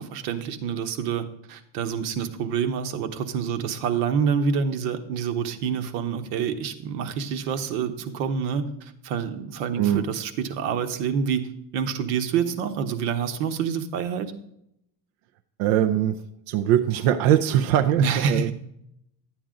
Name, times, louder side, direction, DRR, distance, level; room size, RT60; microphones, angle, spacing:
voice 1, 0.0-14.3 18.0-18.5, right 6 dB, 70° right, 9 dB, 1.2 m, -27 dB
voice 2, 15.6-16.2 16.5-18.5, right 11 dB, 55° right, 9 dB, 0.6 m, -21 dB
11.5 x 9.0 x 3.8 m, 0.77 s
cardioid pair, 165°, 48 cm